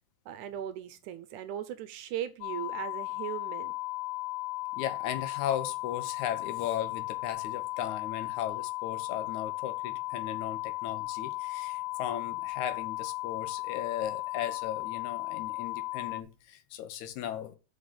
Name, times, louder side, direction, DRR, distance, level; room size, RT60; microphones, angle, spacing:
voice 1, 0.3-3.7, right 10 dB, 80° right, 2.0 m, -38 dB
sound 1, 2.4-16.2, left 22 dB, 85° left, 2.4 m, -36 dB
voice 2, 4.7-17.6, left 10 dB, 70° left, 2.1 m, -37 dB
6.8 x 5.5 x 5.4 m
omnidirectional pair, 3.8 m